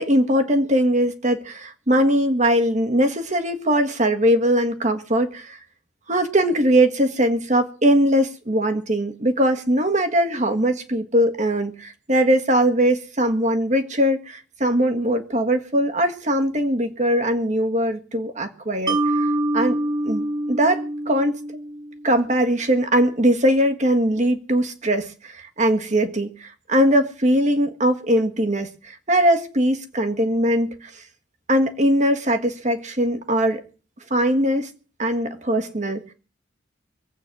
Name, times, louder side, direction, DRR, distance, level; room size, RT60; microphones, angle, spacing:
voice 1, 0.0-5.6 6.1-19.3 19.5-19.8 20.0-21.4 22.0-31.0 31.5-33.6 34.1-34.7 35.0-36.0, equal, 40° right, 1.7 m, -21 dB
Mallet percussion, 18.9-22.1, right 1 dB, 20° right, 0.9 m, -25 dB
23.0 x 8.6 x 6.1 m
head